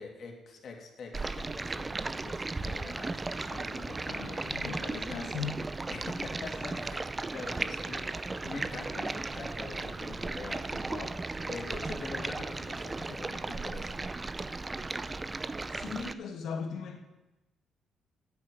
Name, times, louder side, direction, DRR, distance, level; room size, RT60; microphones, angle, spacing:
voice 1, 0.0-4.1 5.9-7.0 7.3-8.1 8.4-11.1 11.4-14.0, left 4 dB, 55° left, 2 dB, 2.7 m, -44 dB
Stream, 1.1-16.1, right 3 dB, 25° right, 0.6 m, -36 dB
voice 2, 4.1-5.7 15.7-17.0, left 6 dB, 75° left, 3 dB, 2.0 m, -38 dB
9.4 x 8.7 x 7.7 m, 1.0 s
cardioid pair, 90°, 0 cm